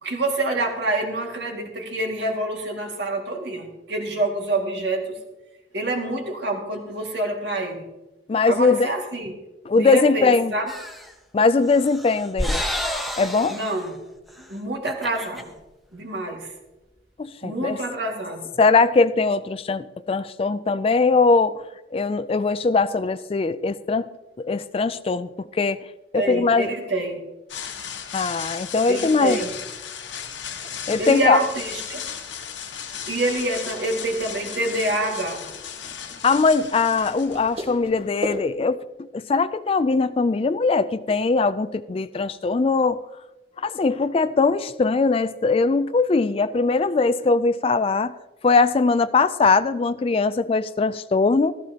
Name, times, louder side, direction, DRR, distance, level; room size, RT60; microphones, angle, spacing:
voice 1, 0.0-5.2 5.7-7.8 8.5-9.4 9.7-10.7 13.5-14.0 14.5-15.5 15.9-16.5 17.4-18.5 26.2-27.2 28.9-29.5 31.0-32.0 33.1-35.4, right 2 dB, 65° right, 2 dB, 2.1 m, -27 dB
voice 2, 8.3-8.9 9.7-10.5 11.3-12.6 13.2-13.6 17.2-17.8 18.6-21.6 21.9-24.1 24.4-25.8 26.1-26.7 28.1-29.4 30.9-31.4 36.2-43.0 43.6-48.1 48.4-51.5, left 4 dB, 30° left, 15 dB, 0.3 m, -21 dB
sound 1, 10.7-11.1 11.7-13.9 14.3-14.4 14.7-15.4, equal, ahead, 0.8 m, -30 dB
sound 2, 27.5-38.2, left 8 dB, 80° left, 1.2 m, -36 dB
sound 3, 30.1-38.5, equal, 30° right, 1.5 m, -40 dB
14.0 x 13.5 x 2.9 m, 1.0 s
head